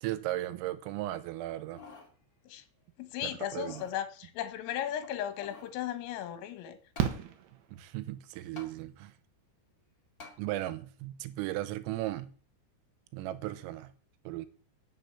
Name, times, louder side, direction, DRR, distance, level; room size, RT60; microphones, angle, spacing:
voice 1, 0.0-1.8 3.2-3.8 7.7-9.1 10.4-12.3 13.1-13.9 14.3-14.5, right 15 dB, 90° right, 3.5 m, -36 dB
sound 1, 1.5-2.1 2.6-2.7 3.4-4.0 5.0-5.8 6.9-7.2 8.5-8.7 10.2-10.4 11.0-11.1, left 4 dB, 45° left, 1.1 m, -50 dB
voice 2, 3.0-6.8, left 11 dB, 80° left, 3.9 m, -36 dB
Fireworks, 5.3-5.4 7.0-8.3 10.1-10.2 10.4-10.5, right 10 dB, 70° right, 2.6 m, -34 dB
12.0 x 6.8 x 8.2 m
omnidirectional pair, 6.0 m